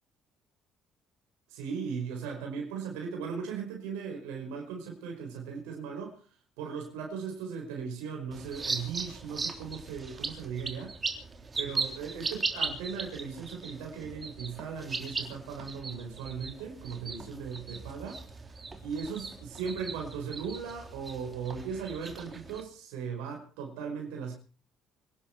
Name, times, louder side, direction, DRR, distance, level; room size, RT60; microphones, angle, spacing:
voice 1, 1.5-6.2 6.6-11.0 11.6-18.2 18.8-24.3, right 6 dB, 90° right, 5.1 m, -38 dB
sound 1, 8.3-22.6, right 4 dB, 30° right, 3.4 m, -38 dB
26.5 x 11.0 x 4.6 m
supercardioid pair, 75°, 0 cm